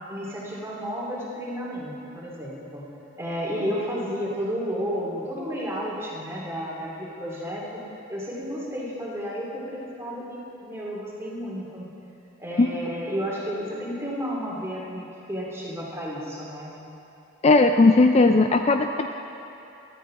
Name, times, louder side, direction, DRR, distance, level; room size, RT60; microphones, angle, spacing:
voice 1, 0.1-2.8 3.2-7.8 8.1-11.9 12.4-16.7, equal, 15° right, -5 dB, 2.4 m, -32 dB
voice 2, 17.4-19.1, left 3 dB, 30° left, 6 dB, 0.3 m, -17 dB
17.0 x 13.0 x 3.7 m, 2.9 s
head